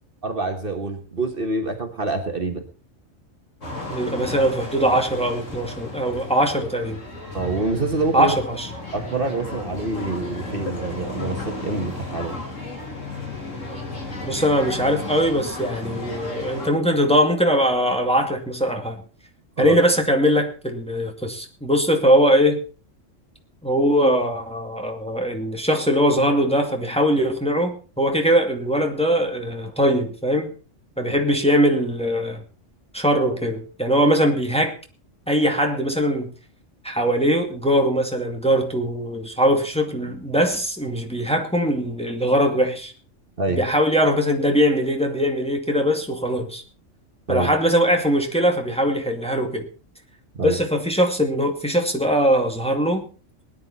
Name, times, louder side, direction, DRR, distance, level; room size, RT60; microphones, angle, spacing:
voice 1, 0.2-2.6 7.3-8.4 8.9-12.4 19.6-19.8 43.4-43.6 47.3-47.5 50.3-50.6, right 3 dB, 45° right, 1.7 m, -26 dB
sound 1, 3.6-16.7, left 2 dB, 75° left, 3.9 m, -34 dB
voice 2, 3.9-7.0 8.1-8.7 14.2-19.0 19.6-22.6 23.6-30.5 31.0-32.4 32.9-34.7 35.3-36.3 36.8-42.9 43.5-46.6 47.3-49.7 50.4-53.1, equal, 5° left, 2.2 m, -21 dB
19.5 x 10.5 x 4.2 m
omnidirectional pair, 1.3 m